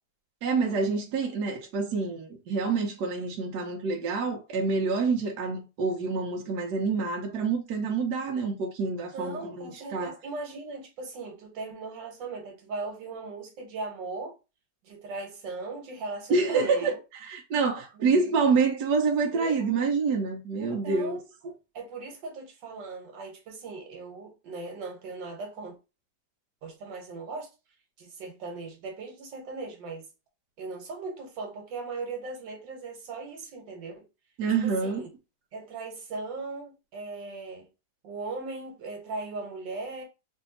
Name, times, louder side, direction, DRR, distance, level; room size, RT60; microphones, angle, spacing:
voice 1, 0.4-10.1 16.3-16.9 17.2-21.2 34.4-35.0, right 4 dB, 70° right, 1.3 m, -27 dB
voice 2, 9.1-14.4 14.8-17.0 18.0-18.2 19.3-19.6 20.6-21.2 21.7-25.8 26.6-27.5 28.0-30.1 30.6-34.1 34.6-35.1 35.5-37.7 38.0-40.0, right 3 dB, 85° right, 1.8 m, -38 dB
3.3 x 2.8 x 3.9 m
omnidirectional pair, 1.9 m